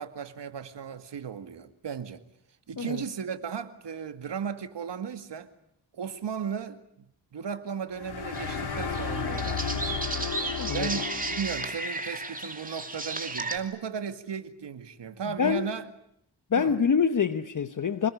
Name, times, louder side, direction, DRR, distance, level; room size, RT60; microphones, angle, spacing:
voice 1, 0.0-2.2 2.7-5.5 5.9-7.1 7.3-10.0 10.7-15.9 16.6-16.8, right 7 dB, 75° right, 2.2 m, -36 dB
sound 1, 7.9-11.7, left 5 dB, 65° left, 3.4 m, -33 dB
sound 2, 8.3-13.6, right 2 dB, 20° right, 2.7 m, -34 dB
voice 2, 10.6-10.9 15.4-15.7 16.5-18.1, left 6 dB, 45° left, 1.0 m, -25 dB
27.0 x 21.0 x 9.9 m
wide cardioid pair, 105°, 43 cm